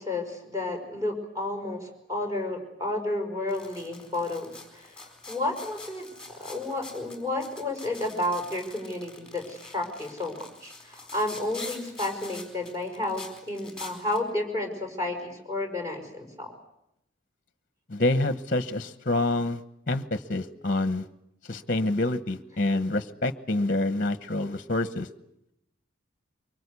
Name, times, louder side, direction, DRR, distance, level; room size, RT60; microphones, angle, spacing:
voice 1, 0.0-16.5, left 2 dB, 15° right, 2 dB, 5.6 m, -32 dB
sound 1, 3.5-14.2, left 3 dB, 5° left, 4.4 m, -45 dB
voice 2, 17.9-19.6 19.9-21.1 21.5-25.1, left 2 dB, 40° left, 11 dB, 1.0 m, -27 dB
24.5 x 23.5 x 8.3 m, 0.81 s
head